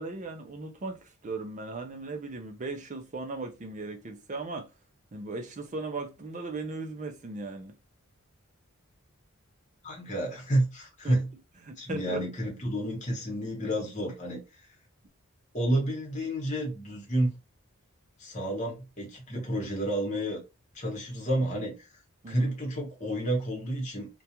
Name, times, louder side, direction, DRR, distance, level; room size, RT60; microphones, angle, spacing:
voice 1, 0.0-4.7 5.1-7.8 11.0-11.2 11.6-12.3 22.2-22.5, right 3 dB, 35° right, 0.4 m, -37 dB
voice 2, 9.8-11.3 11.8-14.4 15.5-17.3 18.2-20.4 20.7-21.7 22.3-24.1, right 1 dB, 35° left, 1.0 m, -30 dB
2.3 x 2.2 x 2.8 m
head